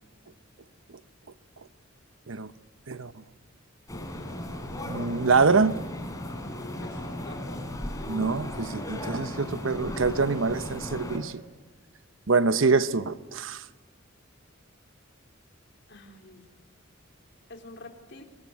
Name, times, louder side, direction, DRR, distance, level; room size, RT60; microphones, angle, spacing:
sound 1, 3.9-11.2, left 1 dB, 15° left, 3.5 m, -36 dB
voice 1, 4.9-5.7 8.1-11.4 12.3-13.6, right 4 dB, 75° right, 0.9 m, -25 dB
voice 2, 6.8-7.6 15.9-16.4 17.5-18.2, left 2 dB, 60° left, 3.5 m, -46 dB
24.0 x 22.0 x 9.5 m
head